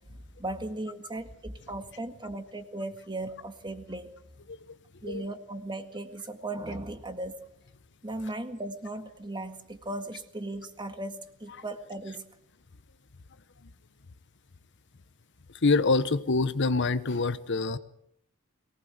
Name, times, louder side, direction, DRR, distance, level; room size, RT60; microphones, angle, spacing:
voice 1, 0.4-4.1 5.0-7.4 8.0-12.2, right 2 dB, 20° right, 8 dB, 1.8 m, -37 dB
voice 2, 15.5-17.8, left 3 dB, 55° left, 13 dB, 1.0 m, -25 dB
23.0 x 18.5 x 8.1 m, 0.71 s
head